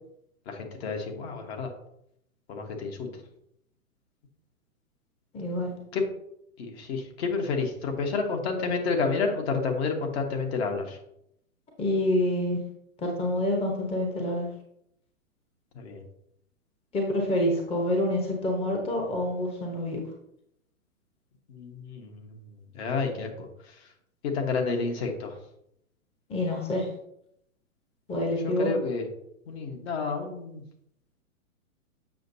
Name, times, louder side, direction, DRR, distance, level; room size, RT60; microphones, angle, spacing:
voice 1, 0.5-1.7 2.5-3.1 5.9-6.0 6.6-11.0 15.7-16.0 21.5-22.4 22.7-23.5 24.2-25.4 28.4-29.1 29.5-30.6, left 4 dB, 45° left, 3 dB, 1.4 m, -30 dB
voice 2, 5.3-5.7 11.8-12.6 13.0-14.5 16.9-20.0 26.3-26.9 28.1-28.7, left 1 dB, 15° left, 1 dB, 1.0 m, -27 dB
7.7 x 5.9 x 2.7 m, 0.76 s
hypercardioid pair, 125°, 42 cm